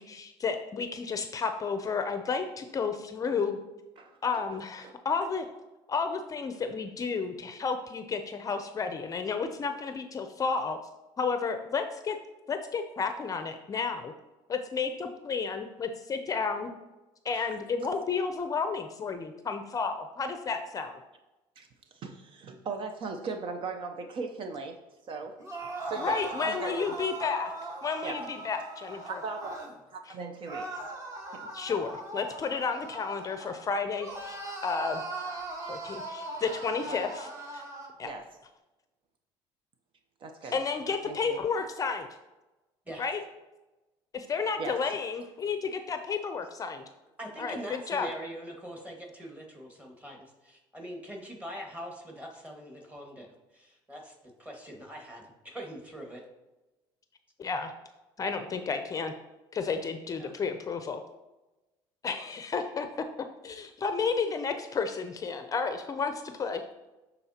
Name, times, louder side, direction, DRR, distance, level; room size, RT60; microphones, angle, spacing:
voice 1, 0.0-3.6 4.2-5.5 5.9-10.8 11.2-12.2 12.5-14.1 14.5-16.7 17.2-20.9 26.0-27.5 27.8-29.2 30.1-30.2 31.5-35.0 35.7-37.6 38.0-38.1 40.5-42.1 43.0-43.2 44.1-46.8 47.4-48.1 57.4-57.7 58.2-59.1 59.5-61.0 62.0-62.9 63.4-66.6, left 5 dB, 35° left, 8 dB, 0.5 m, -32 dB
voice 2, 4.0-4.9 21.6-21.7 21.9-24.8 25.0-25.4 25.9-27.0 28.0-28.2 29.0-29.6 29.9-30.9 31.3-31.4 36.9-37.1 38.0-38.2 40.2-40.5 41.0-41.4 44.6-44.8, right 4 dB, 50° right, 6 dB, 0.7 m, -38 dB
sound 1, 25.4-29.7 30.5-33.6 34.0-37.9, right 2 dB, 30° right, 1.5 m, -40 dB
voice 3, 47.2-54.1 54.4-56.2 60.2-60.3 62.1-62.2, equal, 15° right, 0 dB, 1.8 m, -43 dB
10.5 x 4.1 x 2.8 m, 1.1 s
supercardioid pair, 95°, 11 cm